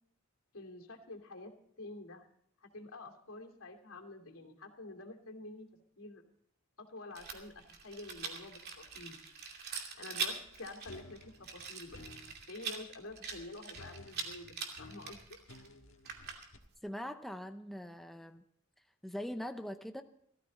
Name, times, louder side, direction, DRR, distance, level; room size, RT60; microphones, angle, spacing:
voice 1, 0.5-1.5 1.8-2.3 2.6-5.7 6.0-6.2 6.8-9.2 9.9-12.0 12.5-15.4, left 2 dB, 85° left, 2 dB, 2.9 m, -48 dB
Rattle, 7.1-16.7, right 5 dB, 50° right, 2.6 m, -43 dB
sound 1, 10.9-12.4 13.7-16.6, left 2 dB, 70° left, 1.6 m, -54 dB
voice 2, 16.8-18.4 19.0-20.0, equal, ahead, 7 dB, 0.6 m, -42 dB
16.5 x 14.0 x 4.1 m, 0.70 s
head